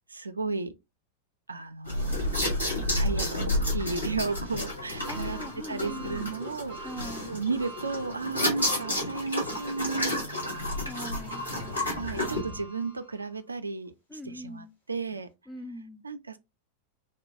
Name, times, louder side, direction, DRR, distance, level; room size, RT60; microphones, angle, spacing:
voice 1, 0.1-0.7 1.5-2.6 3.0-7.0 7.3-10.2 10.5-10.8 11.9-15.3 16.0-16.4, right 4 dB, 80° right, 0.4 m, -34 dB
sound 1, 1.9-12.4, left 1 dB, 85° left, 1.3 m, -31 dB
sound 2, 5.0-13.4 13.8-13.9 15.1-15.2, right 4 dB, 65° left, 2.0 m, -46 dB
voice 2, 5.1-6.3 6.8-7.3 10.9-11.4 14.1-14.7 15.5-16.0, left 1 dB, 10° left, 0.3 m, -41 dB
sound 3, 8.8-9.3 10.0-10.5 10.8-12.6, left 2 dB, 50° left, 0.9 m, -46 dB
3.5 x 2.2 x 2.6 m
figure-of-eight pair, 90°, 0 cm